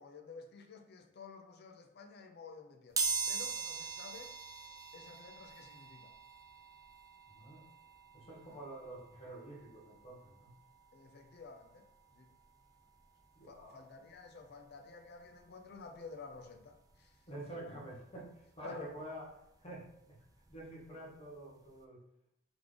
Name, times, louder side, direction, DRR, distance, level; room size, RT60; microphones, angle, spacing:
voice 1, 0.0-4.3 4.9-6.1 8.5-8.6 10.9-11.9 12.1-12.3 13.5-17.5 18.6-18.9, left 4 dB, 55° left, 4 dB, 0.6 m, -52 dB
sound 1, 3.0-13.6 14.1-14.2 15.3-15.4 15.7-17.8 18.2-20.8 21.1-21.3 21.6-21.7, right 4 dB, 15° right, 0.3 m, -43 dB
voice 2, 7.3-7.6 8.1-10.5 13.4-13.9 17.3-20.2 20.5-22.0, right 1 dB, 30° left, -5 dB, 1.2 m, -48 dB
3.6 x 3.6 x 3.3 m, 0.82 s
head